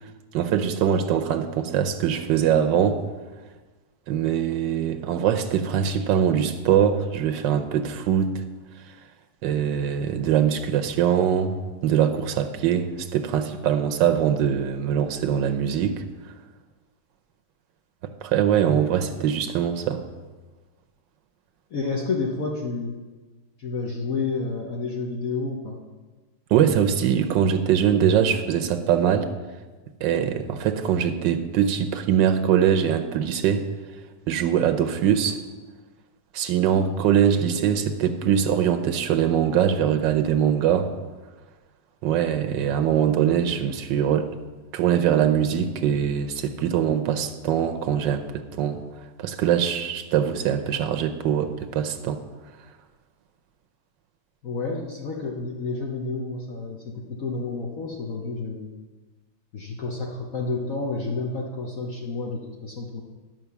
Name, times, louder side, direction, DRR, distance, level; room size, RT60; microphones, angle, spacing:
voice 1, 0.3-3.0 4.1-8.4 9.4-11.6 11.8-16.0 18.2-20.0 26.5-29.3 30.0-33.6 34.3-35.4 36.3-40.9 42.0-44.3 44.7-48.8 49.2-52.2, right 9 dB, 85° right, 7 dB, 1.4 m, -22 dB
voice 2, 21.7-22.9 23.6-25.8 54.4-58.7 59.5-63.0, left 3 dB, 55° left, -1 dB, 1.3 m, -30 dB
11.0 x 5.5 x 6.9 m, 1.3 s
omnidirectional pair, 1.9 m